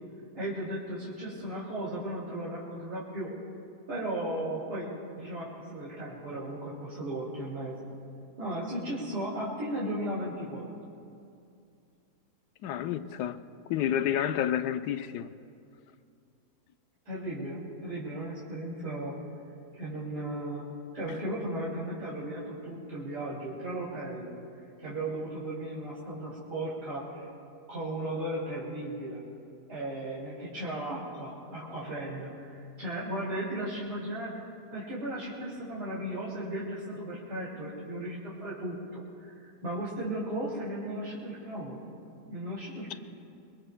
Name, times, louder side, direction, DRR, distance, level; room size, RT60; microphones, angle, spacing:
voice 1, 0.3-3.3 3.9-7.8 8.4-10.7 17.1-19.2 19.7-20.6 20.9-24.3 24.8-27.3 27.7-29.2 29.7-34.3 34.7-41.8 42.3-42.9, right 1 dB, 80° right, 3.1 m, -36 dB
voice 2, 12.6-13.4 13.7-15.3, left 10 dB, 90° left, 1.2 m, -29 dB
25.0 x 23.0 x 2.2 m
omnidirectional pair, 1.7 m